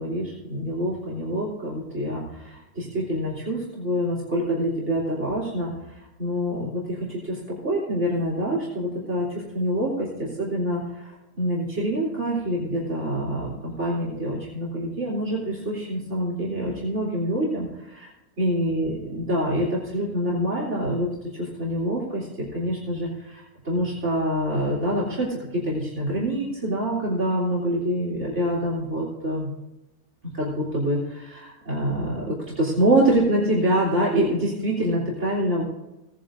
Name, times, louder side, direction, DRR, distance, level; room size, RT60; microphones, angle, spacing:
voice 1, 0.0-5.7 6.2-11.1 11.4-18.1 18.4-22.3 22.5-29.5 30.3-35.6, right 1 dB, 50° right, -5 dB, 3.7 m, -26 dB
18.5 x 10.5 x 2.6 m, 0.97 s
omnidirectional pair, 1.5 m